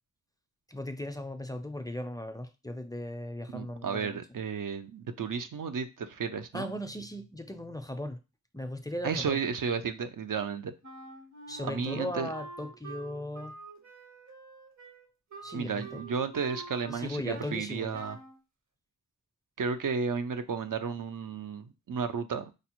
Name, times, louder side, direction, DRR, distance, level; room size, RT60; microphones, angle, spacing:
voice 1, 0.7-4.2 6.5-8.2 8.5-9.4 11.5-13.5 15.4-16.0 16.9-18.0, left 1 dB, 10° left, 0.4 m, -37 dB
voice 2, 3.5-6.7 9.0-10.7 11.6-12.3 15.5-18.2 19.6-22.5, right 6 dB, 80° right, 0.5 m, -33 dB
Wind instrument woodwind instrument, 10.8-17.6 17.9-18.4, right 3 dB, 60° right, 0.8 m, -46 dB
5.0 x 2.0 x 2.9 m
wide cardioid pair, 65°, 32 cm